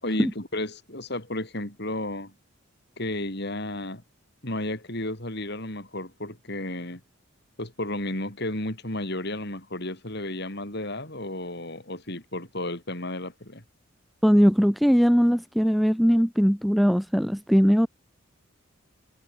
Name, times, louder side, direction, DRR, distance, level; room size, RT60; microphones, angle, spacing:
voice 1, 0.0-2.3 3.0-4.0 4.4-7.0 7.6-13.6, left 1 dB, 50° left, 5.4 m, -33 dB
voice 2, 14.2-17.9, equal, ahead, 0.3 m, -20 dB
head